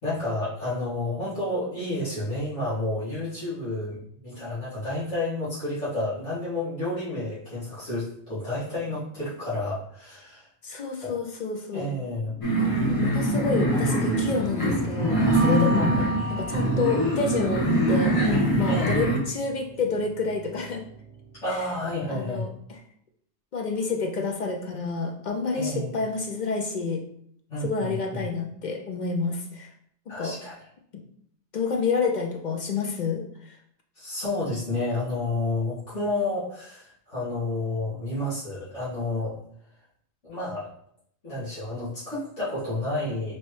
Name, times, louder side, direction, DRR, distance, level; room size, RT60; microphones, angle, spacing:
voice 1, 0.0-10.5 11.0-11.2 11.7-12.4 15.7-16.1 18.7-19.0 21.4-22.5 25.5-26.0 27.5-28.2 30.1-30.5 34.0-39.4 40.2-40.7 41.2-43.4, left 2 dB, 85° left, -12 dB, 2.3 m, -30 dB
voice 2, 10.6-11.9 12.8-15.9 16.3-20.8 21.5-21.7 22.1-22.8 23.5-27.0 27.6-29.7 30.2-30.4 31.5-33.6, left 4 dB, 55° left, 2 dB, 0.5 m, -29 dB
sound 1, 12.4-19.2, right 1 dB, 30° left, 1.3 m, -24 dB
Piano, 13.5-22.0, right 3 dB, 5° left, 1.6 m, -35 dB
sound 2, 15.1-17.9, right 1 dB, 60° right, 0.3 m, -34 dB
4.4 x 3.1 x 3.1 m, 0.67 s
omnidirectional pair, 1.2 m